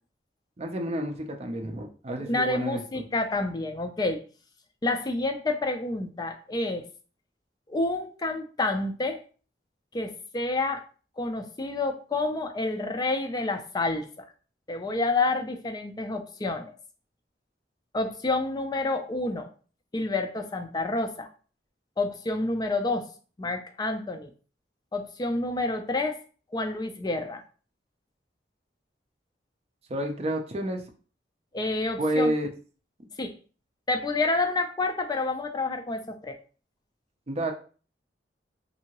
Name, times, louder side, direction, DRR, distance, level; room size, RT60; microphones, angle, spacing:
voice 1, 0.6-2.8 29.9-30.8 32.0-32.5 37.3-37.5, right 1 dB, 35° right, 3 dB, 0.5 m, -29 dB
voice 2, 2.2-4.2 4.8-6.9 7.7-9.2 9.9-10.8 11.2-14.1 14.7-16.7 17.9-19.5 19.9-21.3 22.0-23.1 23.4-24.3 24.9-26.2 26.5-27.4 31.5-32.3 33.2-33.3 33.9-36.4, left 2 dB, 25° left, 5 dB, 0.4 m, -29 dB
2.7 x 2.6 x 2.9 m, 0.39 s
head